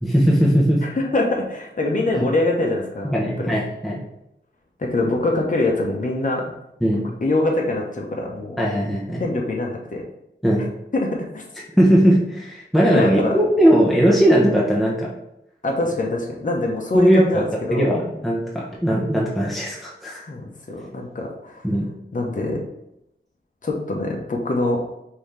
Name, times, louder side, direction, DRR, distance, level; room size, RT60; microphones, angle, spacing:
voice 1, 0.0-0.8 2.1-2.2 3.1-4.0 6.8-7.1 8.6-9.2 10.4-10.6 11.8-15.1 16.9-17.4 17.7-20.2 21.6-21.9, equal, ahead, -4 dB, 0.8 m, -18 dB
voice 2, 0.8-3.1 3.4-3.5 4.8-6.5 7.2-8.6 9.2-10.0 10.9-11.1 11.3-11.4 12.9-13.4 15.6-17.9 20.3-21.6 22.1-22.6 23.6-24.8, left 2 dB, 45° left, -1 dB, 0.8 m, -23 dB
5.5 x 2.8 x 3.3 m, 0.82 s
wide cardioid pair, 75°, 19 cm